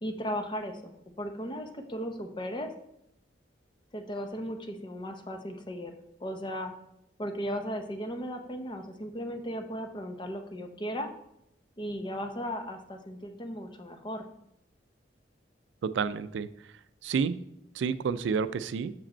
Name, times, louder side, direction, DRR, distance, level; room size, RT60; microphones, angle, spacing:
voice 1, 0.0-2.7 3.9-5.9 6.2-6.7 7.2-11.1 11.8-14.3, equal, 25° left, 6 dB, 0.7 m, -36 dB
voice 2, 15.8-16.7 17.0-17.4 17.7-18.9, right 6 dB, 85° right, 15 dB, 0.3 m, -30 dB
6.1 x 5.0 x 4.3 m, 0.78 s
head